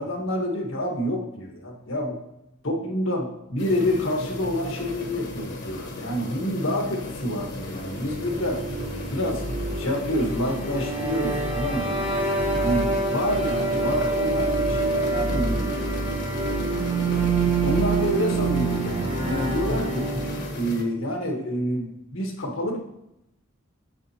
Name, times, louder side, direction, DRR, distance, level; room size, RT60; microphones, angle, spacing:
voice 1, 0.0-2.2 2.6-8.6 9.1-9.4 9.8-12.2 12.6-15.9 17.6-20.1 20.5-22.8, equal, 70° left, 1 dB, 1.5 m, -28 dB
sound 1, 3.6-20.8, left 2 dB, 55° left, 1.3 m, -36 dB
sound 2, 7.7-20.7, right 3 dB, 25° right, 1.0 m, -26 dB
7.5 x 7.0 x 2.9 m, 0.85 s
head